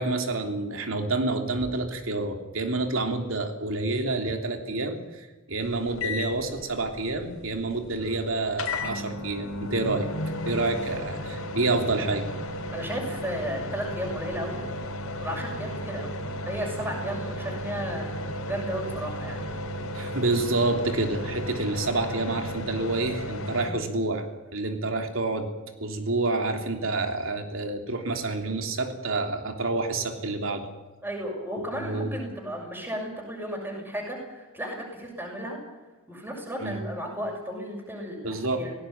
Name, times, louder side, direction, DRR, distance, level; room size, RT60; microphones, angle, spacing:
voice 1, 0.0-10.1 10.5-12.3 19.9-24.2 24.5-25.5 25.8-30.7 31.8-32.2 36.6-36.8 38.2-38.6, right 2 dB, 65° right, 5 dB, 3.3 m, -28 dB
sound 1, 5.6-23.7, left 1 dB, 75° left, 3.0 m, -34 dB
voice 2, 12.7-14.6 15.2-16.1 16.4-18.1 18.5-19.5 31.0-35.6 36.1-38.7, equal, 10° right, -2 dB, 6.4 m, -34 dB
19.0 x 17.5 x 8.9 m, 1.2 s
head